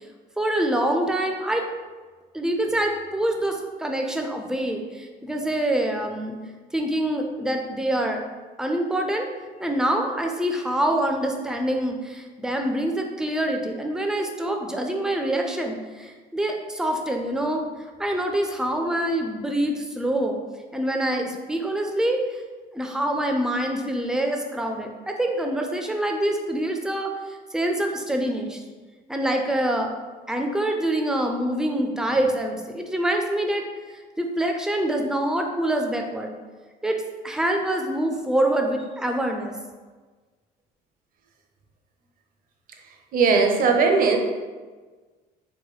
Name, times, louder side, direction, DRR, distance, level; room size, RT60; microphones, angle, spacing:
voice 1, 0.4-1.7 2.3-6.4 6.7-8.2 8.6-9.3 9.6-17.6 18.0-20.4 20.7-22.2 22.7-27.1 27.5-28.6 29.1-29.9 30.3-33.6 34.2-36.3 36.8-37.0 37.2-39.5, right 1 dB, 5° right, 3 dB, 0.4 m, -25 dB
voice 2, 43.1-44.2, right 4 dB, 55° right, 3 dB, 0.6 m, -18 dB
4.7 x 2.2 x 3.1 m, 1.4 s
cardioid pair, 110°, 17 cm